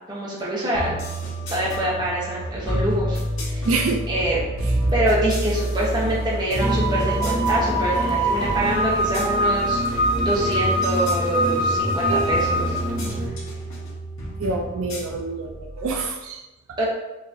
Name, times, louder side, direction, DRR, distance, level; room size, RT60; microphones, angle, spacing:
voice 1, 0.1-1.0 1.5-3.2 3.4-3.7 4.1-4.4 4.9-12.8 16.8-16.9, right 1 dB, 20° right, -6 dB, 1.0 m, -25 dB
sound 1, 0.7-16.0, equal, 70° left, 1.2 m, -28 dB
voice 2, 3.6-4.0 12.0-12.3 14.4-16.8, right 4 dB, 75° right, 2 dB, 0.4 m, -27 dB
sound 2, 6.6-13.3, right 1 dB, 35° right, 0.7 m, -23 dB
4.9 x 3.0 x 2.6 m, 1.0 s
head